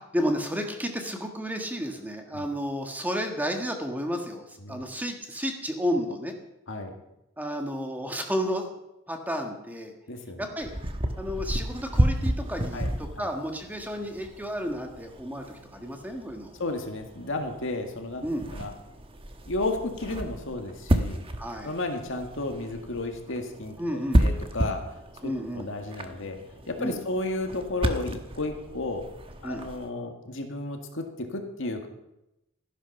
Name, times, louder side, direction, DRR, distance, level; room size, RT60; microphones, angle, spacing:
voice 1, 0.1-6.3 7.4-8.7 9.1-9.9 10.4-10.7 11.2-16.5 18.2-18.5 21.4-21.7 23.8-24.2 25.2-25.7 26.8-27.0 29.4-29.6, equal, 10° right, 4 dB, 1.5 m, -32 dB
voice 2, 10.1-10.5 12.7-12.9 16.6-18.3 18.5-18.7 19.5-21.2 21.6-24.8 25.5-26.4 26.7-29.1 29.4-31.9, left 2 dB, 65° left, 4 dB, 2.0 m, -33 dB
sound 1, 10.6-29.9, equal, 25° right, 1.1 m, -32 dB
14.0 x 11.0 x 5.9 m, 0.89 s
head